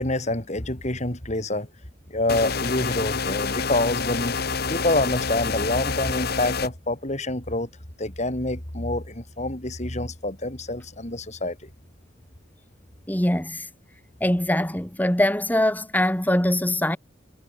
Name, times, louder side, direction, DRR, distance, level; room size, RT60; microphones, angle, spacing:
voice 1, 0.0-1.7 2.1-4.4 4.7-7.7 8.0-11.6, left 2 dB, 35° left, 3.6 m, -27 dB
sound 1, 2.3-6.7, left 5 dB, 55° left, 1.4 m, -27 dB
voice 2, 13.1-13.7 14.2-17.0, left 1 dB, 10° left, 1.6 m, -22 dB
head